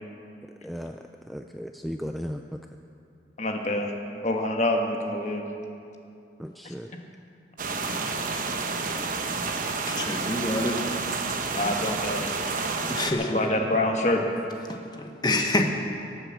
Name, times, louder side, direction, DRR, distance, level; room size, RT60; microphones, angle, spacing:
voice 1, 0.6-2.4 6.4-6.9, equal, ahead, 4 dB, 0.3 m, -36 dB
voice 2, 3.4-3.9 4.2-5.4 7.7-8.2 11.5-12.3 12.5-12.7 13.3-14.2, left 1 dB, 40° left, 2 dB, 1.4 m, -26 dB
sound 1, 7.6-13.1, right 4 dB, 50° right, 0.9 m, -30 dB
voice 3, 9.9-10.8 12.9-13.6 14.7-15.7, left 1 dB, 25° left, 3 dB, 1.1 m, -27 dB
18.5 x 8.1 x 7.4 m, 2.6 s
head